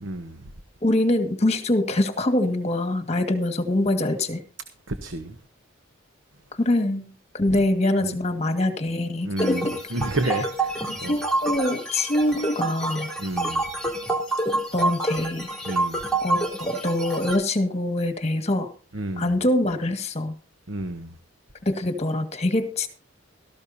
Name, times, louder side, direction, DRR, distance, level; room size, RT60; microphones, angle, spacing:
voice 1, 0.0-0.5 4.9-5.4 7.5-7.6 8.0-8.2 9.2-11.2 13.2-13.6 15.6-16.0 18.9-19.4 20.7-21.2, right 2 dB, 65° right, 1.1 m, -31 dB
voice 2, 0.8-4.4 6.6-9.8 11.1-13.1 14.7-15.5 16.2-18.7 19.2-20.3 21.7-22.9, left 1 dB, 30° left, 1.9 m, -24 dB
sound 1, 9.4-17.4, right 2 dB, 5° left, 3.8 m, -27 dB
17.0 x 14.5 x 2.8 m
head